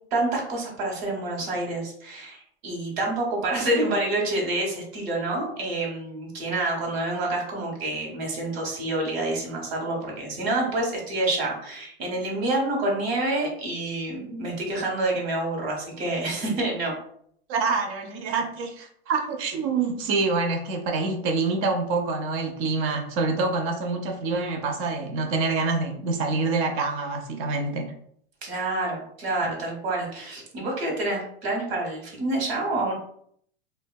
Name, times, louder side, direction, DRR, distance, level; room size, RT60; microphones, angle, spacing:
voice 1, 0.1-16.9 28.4-32.9, right 2 dB, 70° right, 0 dB, 1.0 m, -28 dB
voice 2, 17.5-27.9, right 3 dB, 40° right, 4 dB, 0.6 m, -26 dB
2.5 x 2.2 x 2.2 m, 0.66 s
hypercardioid pair, 105°, 32 cm